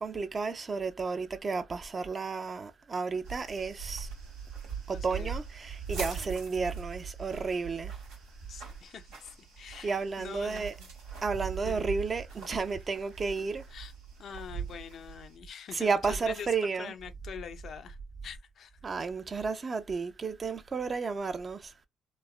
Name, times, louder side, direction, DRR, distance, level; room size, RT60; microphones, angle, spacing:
voice 1, 0.0-4.1 4.9-7.9 9.8-10.7 11.2-13.6 15.7-16.9 18.8-21.7, right 4 dB, 40° right, 0.5 m, -32 dB
sound 1, 3.2-15.4, right 6 dB, 90° right, 1.2 m, -41 dB
voice 2, 4.9-5.3 5.9-6.6 8.5-10.9 11.6-11.8 13.7-13.9 14.2-18.0 18.2-18.8, left 7 dB, 65° left, 0.4 m, -45 dB
3.1 x 2.1 x 2.3 m
supercardioid pair, 60°, 0 cm